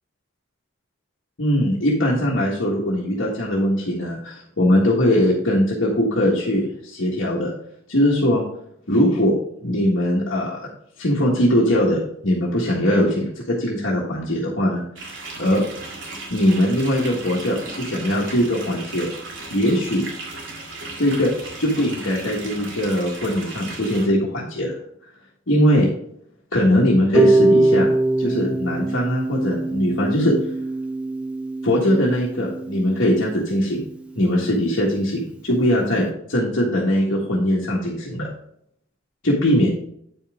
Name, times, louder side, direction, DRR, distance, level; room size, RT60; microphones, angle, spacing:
voice 1, 1.4-7.5 7.9-8.4 8.9-9.4 9.6-10.7 11.0-14.8 15.4-15.7 16.3-19.1 19.5-20.0 21.0-21.3 21.6-24.8 25.5-25.9 26.5-27.9 28.2-30.3 31.6-33.8 34.1-38.3 39.2-39.7, equal, 75° left, -5 dB, 1.5 m, -20 dB
sound 1, 15.0-24.1, right 3 dB, 70° right, 2.3 m, -36 dB
Harp, 27.1-33.2, right 2 dB, 5° right, 0.5 m, -22 dB
8.6 x 5.6 x 3.6 m, 0.70 s
head